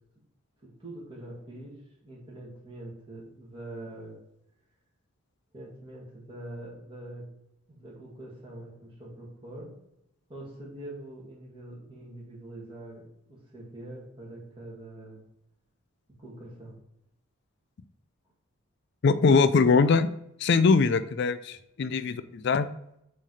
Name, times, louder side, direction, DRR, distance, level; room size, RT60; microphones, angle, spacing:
voice 1, 0.6-1.8 2.0-4.2 5.5-7.3 7.7-9.7 10.3-13.0 13.3-15.2 16.2-16.8, right 1 dB, 25° right, -4 dB, 2.0 m, -44 dB
voice 2, 19.0-20.1 20.4-22.7, left 4 dB, 50° left, 13 dB, 0.4 m, -22 dB
7.3 x 3.3 x 4.1 m, 0.80 s
head